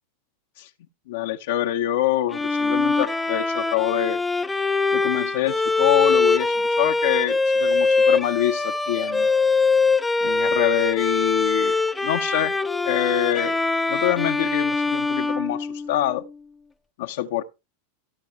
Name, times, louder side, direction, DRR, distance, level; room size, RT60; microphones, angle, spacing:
voice 1, 1.1-4.2 4.9-9.3 10.2-12.6 12.8-13.6 13.9-16.2 17.0-17.4, left 13 dB, 65° left, 0.7 m, -25 dB
Bowed string instrument, 2.3-16.2, left 3 dB, 10° left, 0.5 m, -23 dB
14.0 x 4.7 x 4.5 m
hypercardioid pair, 95°, 0 cm